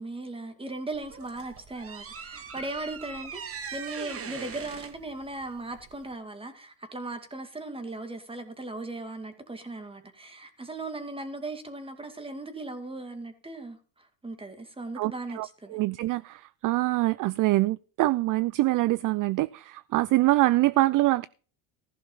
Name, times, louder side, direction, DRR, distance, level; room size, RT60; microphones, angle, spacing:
voice 1, 0.0-15.8, right 2 dB, 10° right, 2.5 m, -38 dB
sound 1, 0.9-6.1, right 6 dB, 30° right, 1.6 m, -41 dB
voice 2, 15.0-21.3, right 18 dB, 50° right, 0.5 m, -25 dB
15.5 x 6.3 x 5.6 m
supercardioid pair, 100°, 43 cm